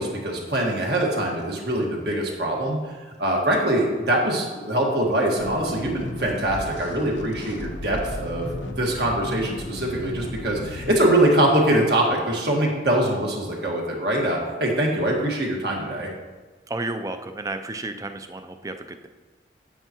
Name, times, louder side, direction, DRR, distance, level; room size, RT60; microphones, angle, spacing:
voice 1, 0.0-16.1, right 1 dB, 60° right, -1 dB, 1.7 m, -23 dB
sound 1, 5.4-11.0, left 1 dB, 90° left, 0.8 m, -35 dB
voice 2, 16.7-19.1, right 2 dB, 20° right, 8 dB, 0.4 m, -32 dB
9.0 x 8.3 x 3.0 m, 1.3 s
head